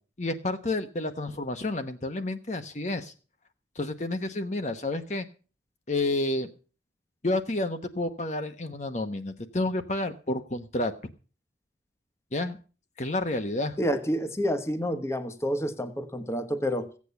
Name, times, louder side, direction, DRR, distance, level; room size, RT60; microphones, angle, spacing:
voice 1, 0.2-3.1 3.8-5.3 5.9-6.5 7.2-10.9 12.3-12.6 13.0-13.8, left 2 dB, 40° left, 7 dB, 1.0 m, -30 dB
voice 2, 13.8-16.9, equal, 15° left, 9 dB, 1.2 m, -29 dB
16.0 x 8.5 x 6.9 m, 0.37 s
head